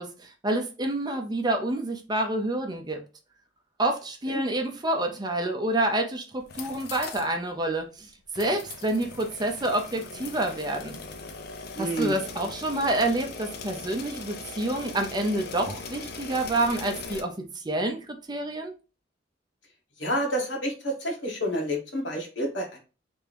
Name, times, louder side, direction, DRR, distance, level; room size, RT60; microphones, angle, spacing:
voice 1, 0.0-3.0 3.8-8.1 8.3-11.0 11.8-18.0 18.3-18.7, right 1 dB, 20° right, 0.6 m, -28 dB
sound 1, 6.4-7.3 7.6-7.7 8.3-17.2, left 4 dB, 55° left, 0.6 m, -40 dB
voice 2, 11.8-12.2 20.0-22.8, equal, 70° left, 1.4 m, -29 dB
3.4 x 2.8 x 3.4 m
head